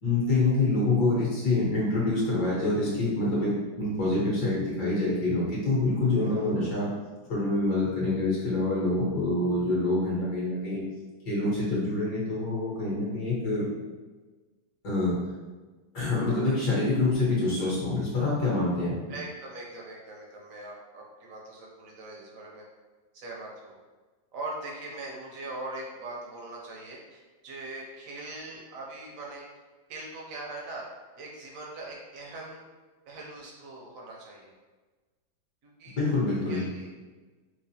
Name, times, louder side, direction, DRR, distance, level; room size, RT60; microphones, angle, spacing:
voice 1, 0.0-6.9 7.3-10.8 11.2-13.7 14.8-15.1 15.9-19.0 35.9-36.6, left 2 dB, 65° left, -6 dB, 1.7 m, -26 dB
voice 2, 6.1-6.7 19.1-22.6 23.1-23.8 24.3-29.4 29.9-30.8 31.2-32.6 33.1-34.5 35.6-36.0 36.5-36.9, right 2 dB, 60° right, -3 dB, 0.9 m, -41 dB
4.7 x 2.1 x 2.7 m, 1.3 s
omnidirectional pair, 2.0 m